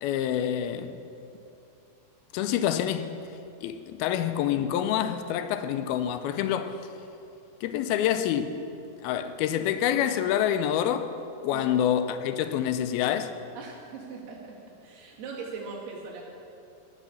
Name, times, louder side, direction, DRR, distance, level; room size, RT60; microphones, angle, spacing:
voice 1, 0.0-1.0 2.3-3.2 3.6-6.8 7.6-8.6 9.0-11.1 11.4-13.3, left 10 dB, 85° left, 2.4 m, -27 dB
voice 2, 13.6-14.5 14.8-16.2, right 4 dB, 85° right, 4.0 m, -40 dB
18.0 x 6.2 x 7.0 m
omnidirectional pair, 4.5 m